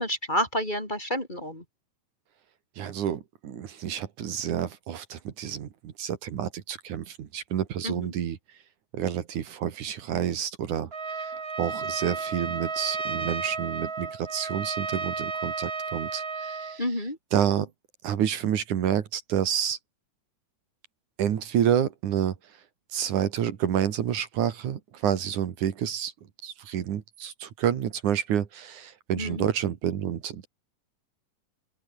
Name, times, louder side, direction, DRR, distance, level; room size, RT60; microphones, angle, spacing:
voice 1, 0.0-1.6 7.8-8.1 16.8-17.2 29.2-29.5, equal, 15° left, 3.8 m, -29 dB
voice 2, 2.8-8.4 8.9-16.8 17.3-17.7 18.0-19.8 21.2-22.4 22.9-26.1 26.4-30.5, right 9 dB, 70° right, 3.2 m, -29 dB
Trumpet, 10.9-16.8, right 4 dB, 35° right, 1.0 m, -33 dB
open air
omnidirectional pair, 3.6 m